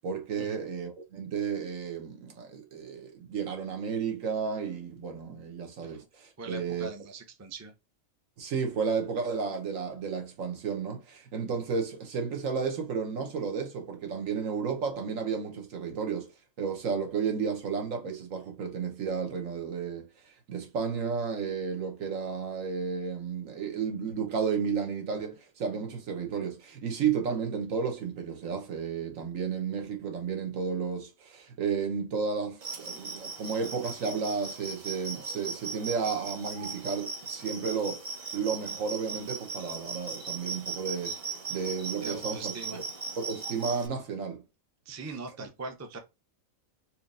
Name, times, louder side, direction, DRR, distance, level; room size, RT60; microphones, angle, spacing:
voice 1, 0.0-6.9 8.4-16.3 16.6-20.1 20.5-38.0 38.3-41.2 41.5-42.8 43.2-44.4 45.4-45.5, right 6 dB, 70° right, 1.3 m, -32 dB
voice 2, 6.4-7.7 42.0-42.8 44.9-46.0, right 3 dB, 25° right, 0.4 m, -41 dB
sound 1, 32.6-43.9, right 4 dB, 45° right, 0.8 m, -38 dB
4.4 x 2.9 x 2.5 m
omnidirectional pair, 1.4 m